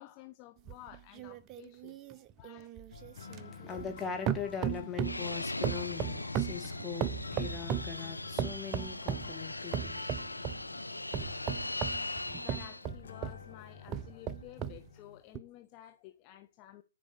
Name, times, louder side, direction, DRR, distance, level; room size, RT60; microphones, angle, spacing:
voice 1, 0.0-2.7 12.3-16.8, left 13 dB, 30° left, 0.8 m, -53 dB
sound 1, 0.7-4.0 4.3-5.3 5.6-8.0 8.4-9.3 9.7-10.6 11.1-13.4 13.9-14.8 15.4-15.5, right 9 dB, 25° right, 0.6 m, -36 dB
sound 2, 2.9-15.2, left 7 dB, 65° left, 1.1 m, -50 dB
voice 2, 3.1-11.3, left 7 dB, 10° left, 1.8 m, -42 dB
Fixed-wing aircraft airplane, 5.0-12.8, left 2 dB, 90° left, 0.5 m, -39 dB
9.6 x 5.1 x 6.4 m
figure-of-eight pair, 125°, 0 cm